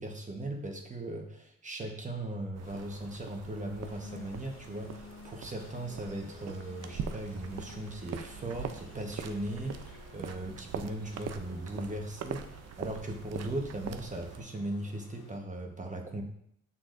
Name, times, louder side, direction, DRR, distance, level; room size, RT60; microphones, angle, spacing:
voice 1, 0.0-16.2, right 1 dB, 25° right, 2 dB, 1.1 m, -38 dB
sound 1, 2.5-14.4, right 7 dB, 55° right, 0.6 m, -43 dB
sound 2, 2.6-15.4, left 5 dB, 75° left, 1.4 m, -58 dB
sound 3, 3.9-9.9, left 5 dB, 45° left, 1.1 m, -51 dB
7.1 x 6.3 x 2.6 m, 0.72 s
cardioid pair, 90°, 30 cm